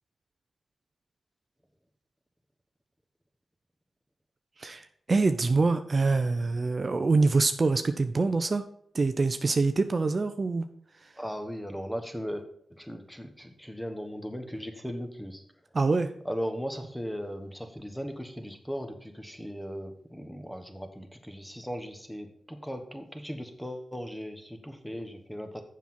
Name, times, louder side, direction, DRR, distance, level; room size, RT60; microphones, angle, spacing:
voice 1, 4.6-8.7 8.9-10.6 15.7-16.1, right 3 dB, 45° right, 8 dB, 0.6 m, -25 dB
voice 2, 11.2-12.4 12.7-15.4 16.2-25.6, equal, 5° left, 6 dB, 1.3 m, -37 dB
7.1 x 6.0 x 5.7 m, 0.64 s
cardioid pair, 60°, 0 cm